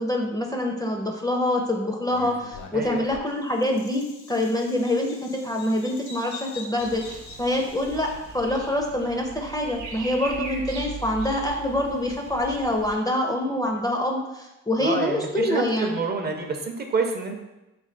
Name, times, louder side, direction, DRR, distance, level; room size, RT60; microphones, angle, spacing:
voice 1, 0.0-16.0, left 1 dB, 10° left, 1 dB, 0.4 m, -26 dB
Bird vocalization bird call bird song, 2.1-8.4, left 4 dB, 75° left, 0.8 m, -44 dB
voice 2, 2.7-3.0 14.8-17.4, right 4 dB, 35° right, 4 dB, 0.5 m, -28 dB
sound 1, 6.8-13.0, right 4 dB, 70° right, 0.8 m, -39 dB
3.2 x 3.0 x 3.8 m, 0.97 s
cardioid pair, 90°, 30 cm